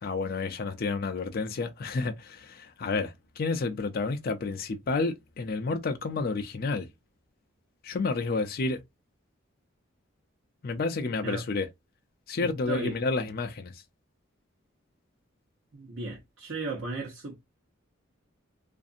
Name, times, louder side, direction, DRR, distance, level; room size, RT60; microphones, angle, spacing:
voice 1, 0.0-6.9 7.8-8.8 10.6-11.7 12.3-13.8, left 3 dB, 45° left, 0.4 m, -30 dB
voice 2, 12.4-13.0 15.7-17.4, right 3 dB, 60° right, 1.0 m, -35 dB
2.6 x 2.4 x 2.4 m
head